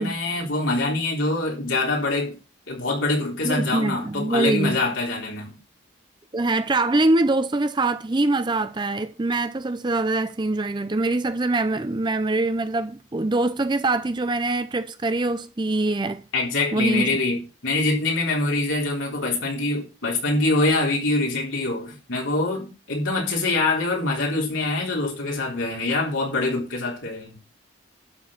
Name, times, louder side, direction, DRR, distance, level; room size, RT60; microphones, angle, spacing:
voice 1, 0.0-2.4 2.7-5.5 16.3-27.4, left 2 dB, 85° left, 3.8 m, -24 dB
voice 2, 3.4-4.8 6.3-16.2 16.7-17.1, right 2 dB, 25° right, 0.5 m, -23 dB
12.0 x 4.5 x 7.3 m
head